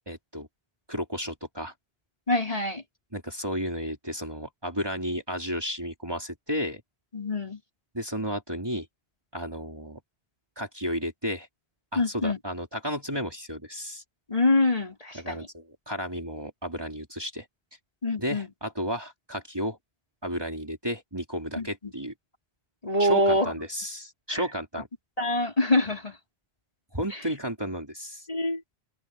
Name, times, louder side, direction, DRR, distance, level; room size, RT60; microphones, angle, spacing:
voice 1, 0.1-0.5 0.9-1.7 3.1-6.8 7.9-8.9 9.3-10.0 10.6-11.5 11.9-14.0 15.1-17.5 18.2-19.8 20.2-22.1 23.0-24.9 26.9-28.3, equal, 25° right, 2.9 m, -33 dB
voice 2, 2.3-2.8 7.1-7.6 11.9-12.4 14.3-15.5 18.0-18.5 21.6-21.9 22.8-23.5 24.3-24.4 25.2-26.2 27.1-27.2 28.3-28.6, left 2 dB, 35° left, 4.7 m, -25 dB
omnidirectional pair, 1.0 m